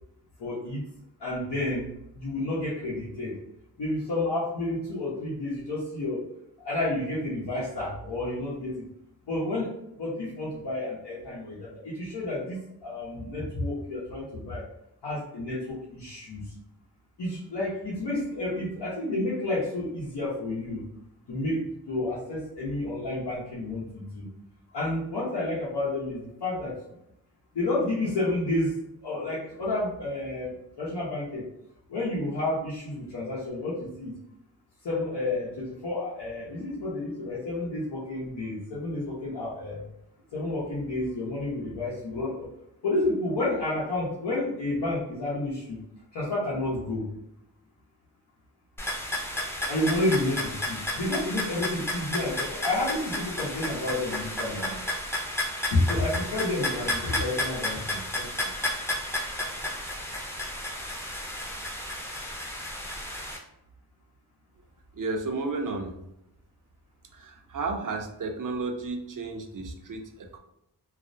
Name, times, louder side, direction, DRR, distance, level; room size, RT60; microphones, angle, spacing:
voice 1, 0.4-0.8 1.2-3.4 3.8-6.2 6.6-8.8 9.3-9.7 10.0-14.6 15.0-16.5 17.2-20.8 21.3-24.3 24.7-26.7 27.5-28.7 29.0-31.5 31.9-34.2 34.8-39.8 40.3-42.5 42.8-45.8 46.1-47.1 49.7-54.8 55.7-58.5, left 2 dB, 80° left, -8 dB, 0.7 m, -30 dB
sound 1, 48.8-63.4, left 1 dB, 5° left, 0.5 m, -32 dB
voice 2, 64.9-66.0 67.1-70.4, right 3 dB, 50° right, 4 dB, 0.5 m, -33 dB
2.4 x 2.0 x 2.5 m, 0.82 s
cardioid pair, 45°, 40 cm